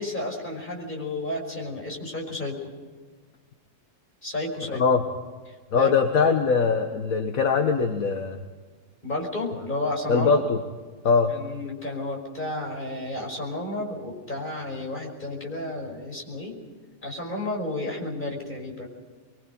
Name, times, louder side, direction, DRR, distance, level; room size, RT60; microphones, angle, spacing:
voice 1, 0.0-2.7 4.2-4.8 5.7-5.9 9.0-10.4 11.3-16.6 17.0-18.9, left 1 dB, 30° left, 0 dB, 5.7 m, -32 dB
voice 2, 5.7-8.4 10.1-10.6 11.0-11.3, left 5 dB, 65° left, 4 dB, 1.7 m, -21 dB
25.5 x 22.5 x 5.4 m, 1.4 s
omnidirectional pair, 1.6 m